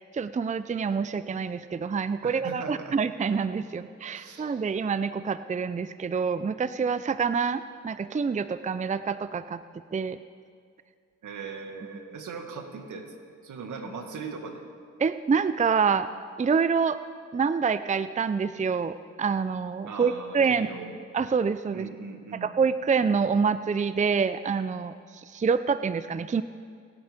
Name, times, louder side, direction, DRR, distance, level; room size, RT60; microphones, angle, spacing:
voice 1, 0.0-9.6 9.9-10.2 15.0-16.1 16.4-17.0 17.3-20.7 21.1-21.9 22.3-24.9 25.3-26.4, right 5 dB, 25° right, 13 dB, 0.5 m, -26 dB
voice 2, 2.2-3.0 4.1-4.6 11.2-13.1 13.4-14.6 19.9-21.0 21.7-22.5, right 5 dB, 75° right, 4 dB, 2.0 m, -39 dB
26.0 x 9.0 x 5.2 m, 2.2 s
cardioid pair, 60°, 31 cm